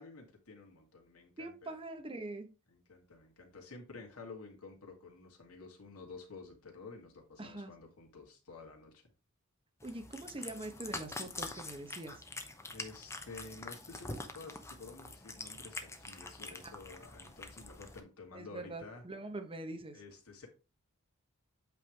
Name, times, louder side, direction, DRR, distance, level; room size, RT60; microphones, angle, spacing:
voice 1, 0.0-1.8 2.7-9.0 12.7-19.0 19.9-20.5, left 3 dB, 85° left, 2 dB, 2.1 m, -51 dB
voice 2, 1.4-2.5 7.4-7.7 9.8-12.2 18.3-20.0, right 2 dB, 25° right, 6 dB, 1.0 m, -43 dB
Cat, 9.8-18.0, left 2 dB, 15° left, 0.8 m, -45 dB
8.3 x 3.4 x 4.6 m, 0.32 s
head